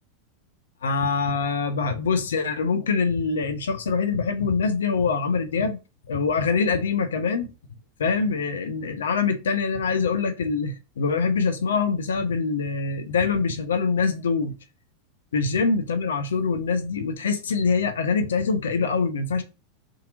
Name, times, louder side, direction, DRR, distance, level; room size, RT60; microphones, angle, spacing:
voice 1, 0.8-5.8 6.1-7.5 8.0-14.5 15.3-19.4, left 5 dB, 80° left, 0.7 m, -24 dB
3.8 x 2.8 x 4.9 m
hypercardioid pair, 90°, 0 cm